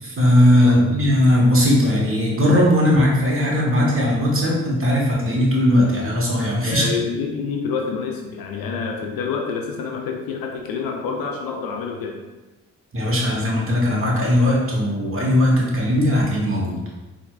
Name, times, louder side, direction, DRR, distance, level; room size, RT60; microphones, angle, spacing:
voice 1, 0.0-6.8 12.9-16.8, left 1 dB, 35° right, -3 dB, 1.3 m, -18 dB
voice 2, 0.6-1.0 6.7-12.2, left 5 dB, 70° left, 1 dB, 0.5 m, -27 dB
4.3 x 2.6 x 2.5 m, 1.2 s
hypercardioid pair, 45°, 37 cm